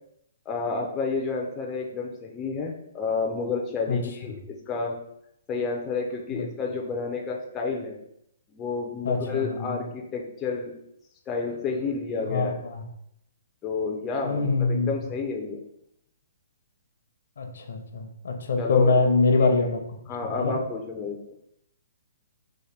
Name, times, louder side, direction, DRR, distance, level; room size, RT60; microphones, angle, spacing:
voice 1, 0.5-5.0 5.5-8.0 8.5-10.7 11.3-12.5 13.6-15.6 18.6-18.9 19.4-19.5 20.1-21.2, left 4 dB, 15° left, 0 dB, 0.4 m, -30 dB
voice 2, 9.0-9.8 12.3-12.8 14.2-14.9 17.4-19.8 20.3-20.5, left 3 dB, 75° left, 5 dB, 0.6 m, -24 dB
4.0 x 2.1 x 3.3 m, 0.76 s
hypercardioid pair, 160°, 0 cm